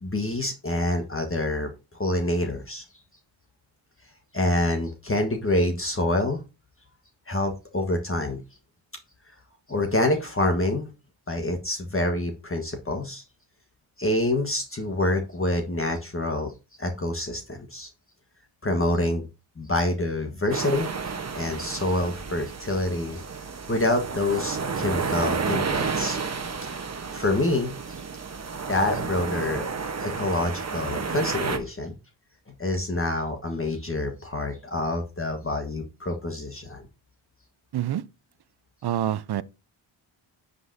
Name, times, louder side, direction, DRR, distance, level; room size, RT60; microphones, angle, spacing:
voice 1, 0.0-2.8 4.3-6.4 7.3-8.4 9.7-10.9 11.3-13.2 14.0-16.5 16.8-17.9 18.6-19.3 19.6-20.9 21.3-23.2 23.7-26.2 26.7-28.0 28.7-29.7 30.0-32.0 32.5-36.8, left 1 dB, 25° left, 1.5 m, -27 dB
sound 1, 20.5-31.6, right 5 dB, 30° right, 1.2 m, -31 dB
voice 2, 38.8-39.4, right 11 dB, 50° right, 0.7 m, -26 dB
9.5 x 5.4 x 2.8 m
cardioid pair, 55°, 49 cm